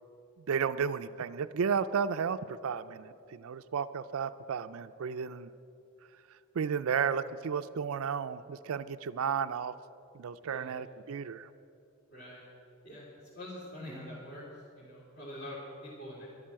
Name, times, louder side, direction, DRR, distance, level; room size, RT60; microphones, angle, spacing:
voice 1, 0.5-5.5 6.6-9.7 10.1-11.5, right 6 dB, 80° right, 11 dB, 0.4 m, -33 dB
voice 2, 10.4-10.7 12.1-12.4 12.8-13.1 13.3-16.3, left 1 dB, 50° left, -8 dB, 3.2 m, -45 dB
13.0 x 11.0 x 7.5 m, 2.7 s
head